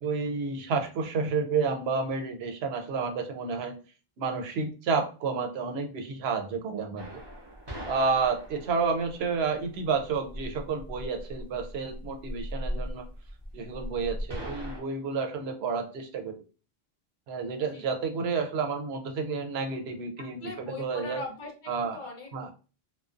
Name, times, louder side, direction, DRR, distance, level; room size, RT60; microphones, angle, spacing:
voice 1, 0.0-3.7 4.2-7.1 7.9-13.1 13.5-16.4 17.3-21.2 21.7-22.0 22.3-22.5, right 5 dB, 85° right, 5 dB, 0.8 m, -30 dB
sound 1, 7.0-14.8, equal, 30° right, 0.7 m, -39 dB
voice 2, 20.4-21.5 21.8-22.5, left 2 dB, 55° left, 1 dB, 0.7 m, -41 dB
2.4 x 2.2 x 2.4 m, 0.35 s
omnidirectional pair, 1.0 m